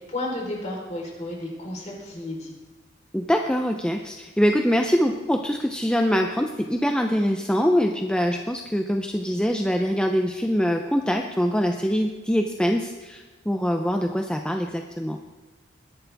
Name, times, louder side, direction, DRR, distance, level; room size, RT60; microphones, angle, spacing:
voice 1, 0.1-2.5, left 1 dB, 35° left, -1 dB, 3.9 m, -32 dB
voice 2, 3.1-15.2, equal, 5° left, 4 dB, 0.6 m, -24 dB
21.0 x 11.0 x 3.5 m, 1.3 s
head